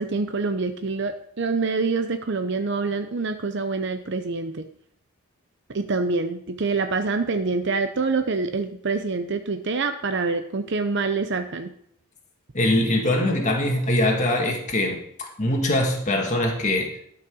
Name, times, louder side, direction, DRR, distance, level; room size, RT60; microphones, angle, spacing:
voice 1, 0.0-4.6 5.7-11.7, right 4 dB, 55° right, 8 dB, 0.6 m, -26 dB
voice 2, 12.5-17.0, left 1 dB, 35° left, 1 dB, 1.9 m, -23 dB
12.5 x 6.0 x 6.2 m, 0.68 s
head